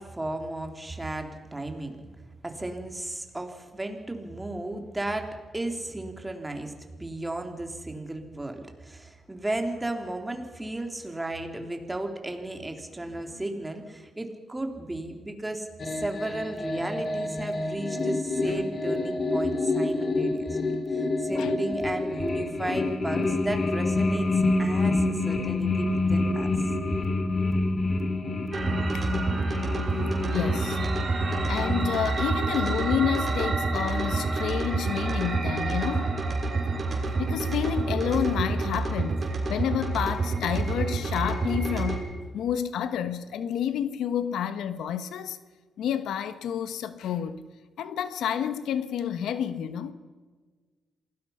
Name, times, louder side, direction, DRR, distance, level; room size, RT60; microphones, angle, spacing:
voice 1, 0.0-2.0 2.4-26.5, right 1 dB, 15° right, 3.2 m, -34 dB
sound 1, 15.8-31.9, left 2 dB, 45° left, 2.3 m, -27 dB
sound 2, 28.5-42.0, right 3 dB, 40° right, 5.6 m, -28 dB
voice 2, 30.3-30.8 31.5-36.2 37.2-42.0 42.3-45.4 45.8-47.4 47.8-49.9, left 9 dB, 85° left, 1.2 m, -29 dB
27.0 x 19.0 x 5.7 m
cardioid pair, 90°, 0 cm